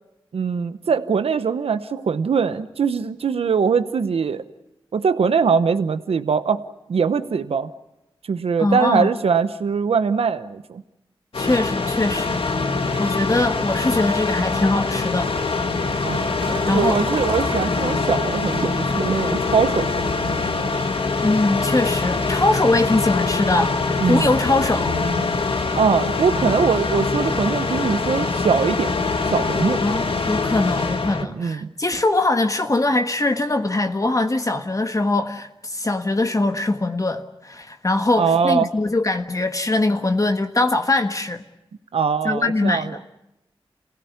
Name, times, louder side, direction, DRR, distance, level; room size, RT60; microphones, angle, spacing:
voice 1, 0.3-4.4 4.9-6.6 6.9-7.7 8.3-10.8 16.0-16.3 16.7-20.1 24.0-24.3 25.8-29.0 29.3-29.8 31.3-31.7 38.2-38.7 41.9-43.0, right 6 dB, 90° right, 0.9 m, -22 dB
voice 2, 8.6-9.1 11.4-12.4 13.0-15.3 16.7-17.0 17.7-17.8 21.2-24.9 29.8-41.4 42.2-43.0, left 2 dB, 35° left, 1.5 m, -22 dB
sound 1, 11.3-31.2, left 4 dB, 70° left, 1.9 m, -23 dB
sound 2, 16.4-21.5, right 3 dB, 60° right, 2.1 m, -35 dB
28.0 x 17.0 x 9.6 m
cardioid pair, 50°, 10 cm